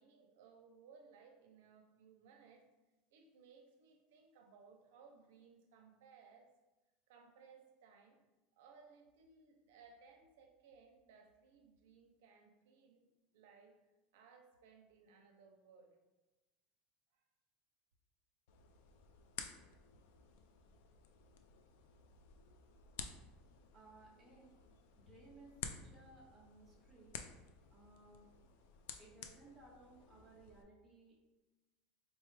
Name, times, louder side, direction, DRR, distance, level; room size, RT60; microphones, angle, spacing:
voice 1, 0.0-2.6 3.1-6.5 7.1-8.2 8.5-13.8 14.1-16.0 17.1-17.3, right 5 dB, 75° right, 2 dB, 0.5 m, -63 dB
sound 1, 18.5-30.6, left 7 dB, 65° left, 0.3 m, -53 dB
voice 2, 23.7-24.5 25.0-27.2 27.7-28.3 29.0-31.1, right 2 dB, 5° right, -5 dB, 0.7 m, -61 dB
4.0 x 2.3 x 3.2 m, 1.1 s
supercardioid pair, 175°, 0 cm